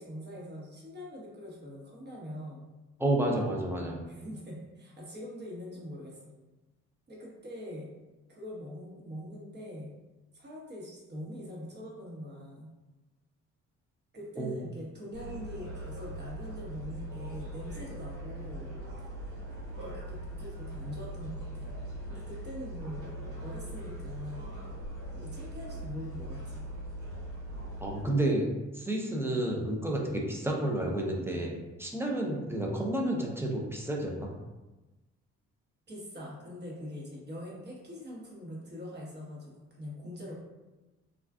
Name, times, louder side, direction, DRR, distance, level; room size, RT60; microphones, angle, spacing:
voice 1, 0.0-2.7 4.1-6.3 7.1-7.9 8.3-9.9 10.3-12.7 14.1-18.7 19.8-21.7 22.1-23.1 23.4-24.5 25.1-26.7 35.9-40.3, equal, 35° right, -4 dB, 1.0 m, -43 dB
voice 2, 3.0-4.0 14.4-14.5 27.8-28.5 28.7-31.5 31.8-34.3, right 1 dB, 10° right, -1 dB, 0.5 m, -30 dB
sound 1, 15.1-28.0, right 1 dB, 85° right, 1.4 m, -41 dB
2.4 x 2.3 x 3.4 m, 1.1 s
cardioid pair, 90°, 30 cm